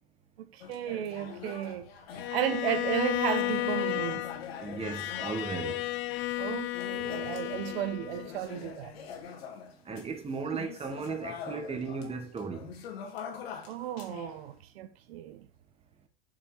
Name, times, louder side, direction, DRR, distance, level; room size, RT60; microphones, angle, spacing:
voice 1, 0.4-1.9 2.2-4.3 6.4-8.9 13.7-15.5, right 12 dB, 85° right, 1.2 m, -34 dB
sound 1, 0.6-6.4 6.7-12.1 12.4-14.5, left 7 dB, 90° left, 2.2 m, -44 dB
Bowed string instrument, 2.2-8.4, left 17 dB, 40° left, 0.5 m, -33 dB
voice 2, 4.6-5.9 9.8-12.7, right 5 dB, 20° right, 1.8 m, -36 dB
6.4 x 6.1 x 6.5 m
supercardioid pair, 125°, 30 cm